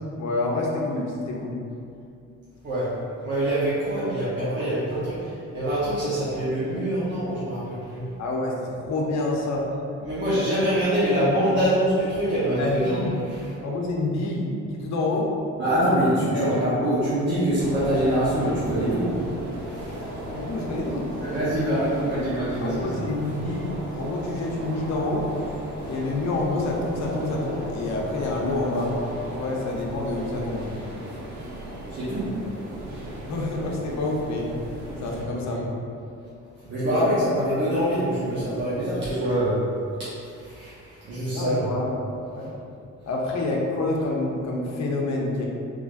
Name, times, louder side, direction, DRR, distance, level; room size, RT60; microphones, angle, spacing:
voice 1, 0.2-1.6 8.2-9.7 10.3-10.6 11.1-11.4 12.6-13.1 13.6-15.3 16.3-16.7 20.0-21.1 22.6-25.3 25.9-28.9 29.2-30.7 33.3-34.5 35.0-35.6 36.9-37.1 41.3-41.9 42.3-42.5 43.1-45.5, left 2 dB, 65° left, -2 dB, 0.7 m, -28 dB
voice 2, 2.6-8.1 10.0-13.5 15.6-19.1 19.7-20.0 21.2-23.0 31.9-32.3 35.3-35.6 36.6-39.6 40.2-41.7, right 1 dB, 40° right, -11 dB, 0.9 m, -25 dB
sound 1, 17.6-35.2, right 1 dB, 80° right, 0.8 m, -36 dB
3.9 x 3.1 x 2.4 m, 2.5 s
cardioid pair, 130°, 29 cm